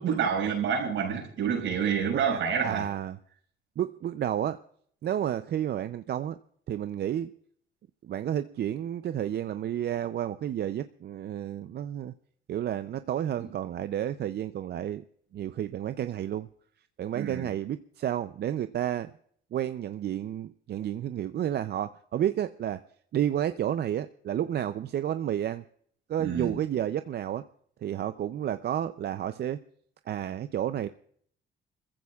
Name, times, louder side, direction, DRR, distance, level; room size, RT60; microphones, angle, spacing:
voice 1, 0.0-2.9 17.1-17.5 26.2-26.6, right 7 dB, 80° right, 5.6 m, -28 dB
voice 2, 2.1-3.2 3.8-4.6 5.0-6.4 6.7-7.3 8.0-12.1 12.5-15.0 15.3-16.5 17.0-19.1 19.5-22.8 23.1-25.6 26.1-27.5 27.8-29.6 30.1-30.9, right 10 dB, 55° right, 0.5 m, -31 dB
26.5 x 15.0 x 2.4 m
cardioid pair, 90°, 20 cm